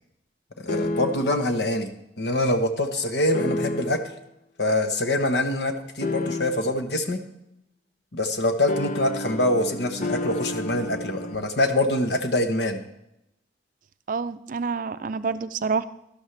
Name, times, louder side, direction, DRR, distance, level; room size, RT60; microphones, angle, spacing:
voice 1, 0.6-1.9 2.2-4.0 4.6-7.2 8.1-12.8, left 1 dB, 65° left, 7 dB, 1.1 m, -24 dB
sound 1, 0.7-1.5 3.3-4.2 6.0-6.9 8.7-11.4, left 2 dB, 45° left, 0.6 m, -30 dB
voice 2, 14.1-15.8, right 5 dB, 50° right, 13 dB, 0.4 m, -27 dB
12.5 x 11.5 x 3.2 m, 0.84 s
head